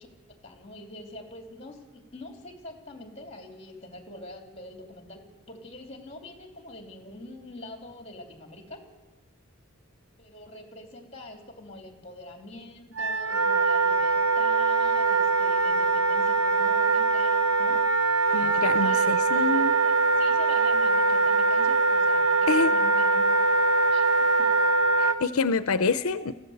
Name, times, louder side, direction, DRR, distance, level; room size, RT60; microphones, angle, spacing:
voice 1, 0.0-8.8 10.2-17.8 18.3-23.3 23.9-24.0 24.4-24.5, left 1 dB, 30° left, 4 dB, 3.0 m, -44 dB
Wind instrument woodwind instrument, 12.9-25.2, right 3 dB, 90° right, 1.3 m, -22 dB
voice 2, 18.3-19.7 22.5-22.7 25.0-26.4, left 4 dB, 90° left, 13 dB, 0.6 m, -26 dB
22.0 x 15.5 x 7.9 m, 1.2 s
head